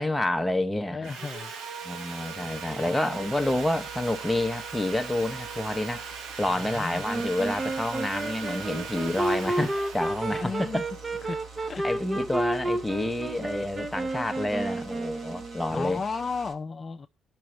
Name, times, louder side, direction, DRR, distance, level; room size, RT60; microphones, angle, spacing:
voice 1, 0.0-1.1 1.8-6.0 6.4-10.8 11.8-16.0, left 1 dB, 5° left, 0.9 m, -28 dB
voice 2, 0.9-1.5 6.5-7.0 10.3-10.8 11.2-11.4 11.7-11.8 15.7-17.1, left 4 dB, 35° left, 0.5 m, -34 dB
Sawing, 1.0-12.1, right 6 dB, 85° right, 1.2 m, -40 dB
sound 1, 3.1-16.5, right 3 dB, 55° right, 2.1 m, -47 dB
Wind instrument woodwind instrument, 7.0-15.8, right 2 dB, 25° right, 0.9 m, -31 dB
17.0 x 6.1 x 3.1 m
cardioid pair, 90°, 0 cm